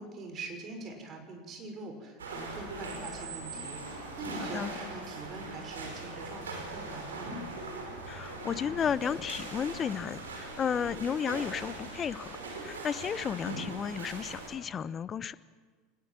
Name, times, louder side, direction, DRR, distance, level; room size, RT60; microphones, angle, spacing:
voice 1, 0.0-7.3, right 3 dB, 40° right, 5 dB, 6.1 m, -43 dB
sound 1, 2.2-14.5, right 2 dB, 80° right, 5.2 m, -41 dB
voice 2, 8.1-12.4 12.6-15.3, left 7 dB, 35° left, 16 dB, 0.9 m, -33 dB
24.5 x 20.5 x 7.5 m, 1.5 s
hypercardioid pair, 80°, 0 cm